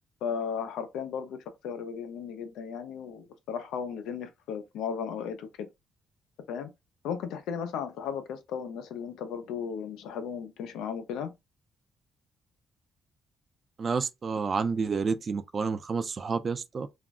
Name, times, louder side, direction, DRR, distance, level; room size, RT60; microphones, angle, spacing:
voice 1, 0.2-5.7 6.5-6.7 7.0-11.3, left 7 dB, 90° left, 0.5 m, -35 dB
voice 2, 13.8-16.9, right 5 dB, 40° right, 0.4 m, -29 dB
2.4 x 2.0 x 3.4 m
cardioid pair, 90°, 0 cm